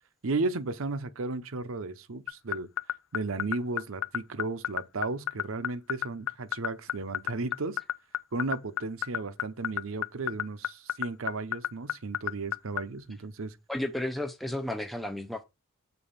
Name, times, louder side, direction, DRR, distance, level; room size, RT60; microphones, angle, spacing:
voice 1, 0.2-2.7 3.1-7.8 8.3-13.6, right 3 dB, 65° right, 0.7 m, -34 dB
sound 1, 2.3-12.8, left 11 dB, 65° left, 0.4 m, -29 dB
voice 2, 13.7-15.4, left 1 dB, ahead, 0.5 m, -33 dB
7.0 x 4.1 x 5.5 m
head